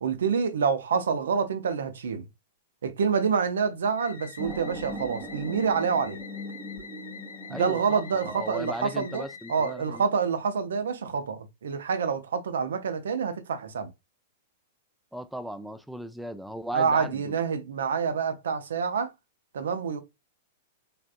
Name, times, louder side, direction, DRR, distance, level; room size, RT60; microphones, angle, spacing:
voice 1, 0.0-2.3 2.8-6.2 7.5-9.2 9.5-13.9 16.7-19.1 19.5-20.0, right 6 dB, 65° right, 0.5 m, -27 dB
sound 1, 4.0-10.0, left 6 dB, 70° left, 0.5 m, -46 dB
sound 2, 4.4-9.4, equal, 30° right, 0.8 m, -40 dB
voice 2, 7.5-10.0 15.1-17.4, equal, ahead, 0.3 m, -37 dB
3.5 x 2.4 x 2.4 m
figure-of-eight pair, 100°, 0 cm